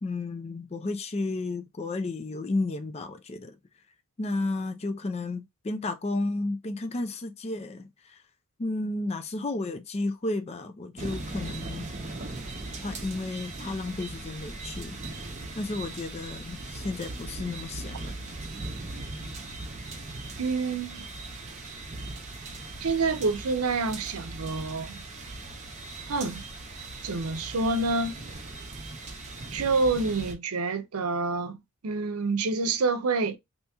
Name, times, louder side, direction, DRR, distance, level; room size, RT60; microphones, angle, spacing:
voice 1, 0.0-3.6 4.2-8.2 8.6-11.9 12.8-15.3 15.6-18.2, left 2 dB, 30° left, 0.4 m, -32 dB
sound 1, 11.0-30.3, right 2 dB, 30° right, 0.7 m, -39 dB
voice 2, 20.4-21.1 22.8-25.0 26.1-26.4 27.0-28.2 29.5-33.4, right 3 dB, 85° right, 0.6 m, -27 dB
2.8 x 2.8 x 3.4 m
head